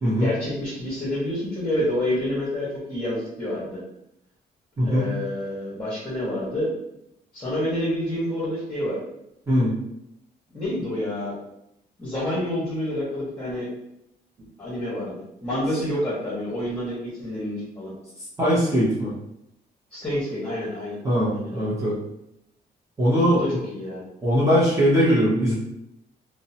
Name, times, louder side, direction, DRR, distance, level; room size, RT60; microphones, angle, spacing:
voice 1, 0.2-3.8 4.8-6.7 7.3-9.0 10.5-11.4 12.0-13.7 14.6-17.9 19.9-21.0 21.3-21.7 23.3-24.0, left 1 dB, 15° left, -9 dB, 1.0 m, -28 dB
voice 2, 4.8-5.1 9.5-9.7 18.4-19.1 21.0-22.0 23.0-23.4 24.2-25.5, equal, 20° right, -9 dB, 0.8 m, -20 dB
2.6 x 2.1 x 2.7 m, 0.81 s
cardioid pair, 120°, 17 cm